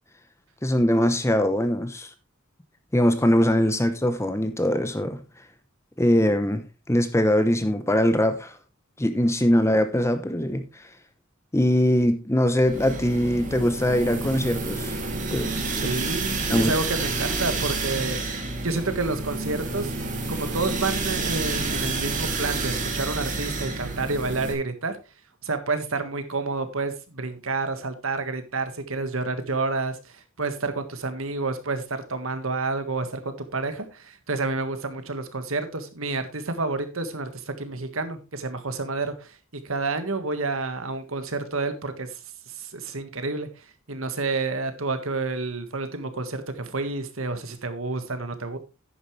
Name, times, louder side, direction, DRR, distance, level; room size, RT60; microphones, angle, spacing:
voice 1, 0.6-2.1 2.9-5.2 6.0-8.5 9.0-10.6 11.5-14.9 15.3-15.5 16.5-16.7, left 1 dB, 15° left, 0.9 m, -22 dB
sound 1, 12.6-24.5, right 3 dB, 40° right, 2.6 m, -29 dB
voice 2, 15.4-19.9 20.3-25.0 25.4-42.2 42.5-48.6, right 3 dB, 70° right, 1.6 m, -29 dB
11.0 x 9.5 x 3.3 m
head